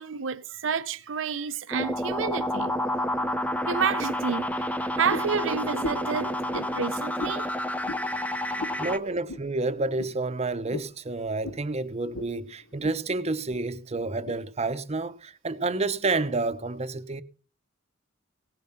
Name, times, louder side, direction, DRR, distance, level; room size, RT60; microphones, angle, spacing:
voice 1, 0.0-2.9 3.7-7.5 8.5-9.2, right 6 dB, 70° right, 0.6 m, -30 dB
sound 1, 1.7-9.0, left 1 dB, 5° left, 0.6 m, -29 dB
sound 2, 5.1-5.4 5.8-6.1 6.5-6.7 7.2-7.4 7.8-8.1 8.6-8.8 9.3-9.5 10.0-10.1 10.7-10.9 11.4-11.6 12.1-12.3 12.6-13.0 13.5-13.6 14.3-14.4, left 2 dB, 70° left, 1.1 m, -36 dB
voice 2, 8.8-17.2, right 3 dB, 35° right, 0.8 m, -29 dB
17.5 x 7.4 x 5.7 m
head